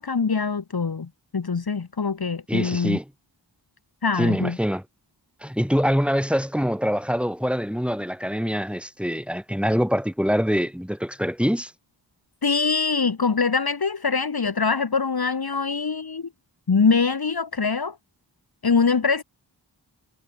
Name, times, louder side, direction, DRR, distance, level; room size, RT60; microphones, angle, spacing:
voice 1, 0.0-3.0 4.0-4.6 12.4-16.3 16.7-18.0 18.6-19.2, left 5 dB, 55° left, 1.4 m, -23 dB
voice 2, 2.5-3.1 4.2-4.8 5.4-11.7, equal, ahead, 6.9 m, -24 dB
wide cardioid pair, 50°, 44 cm